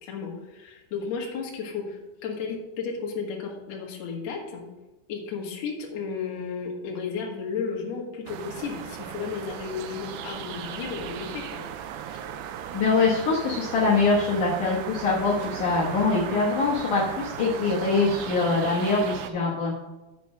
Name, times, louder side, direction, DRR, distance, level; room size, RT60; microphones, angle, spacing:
voice 1, 0.0-4.6 5.1-11.6 12.1-12.2, left 5 dB, 65° left, -1 dB, 1.7 m, -33 dB
sound 1, 8.3-19.3, right 9 dB, 90° right, 2.5 m, -36 dB
voice 2, 12.7-19.7, left 3 dB, 80° left, -5 dB, 1.7 m, -23 dB
9.2 x 5.1 x 6.2 m, 1.1 s
omnidirectional pair, 5.7 m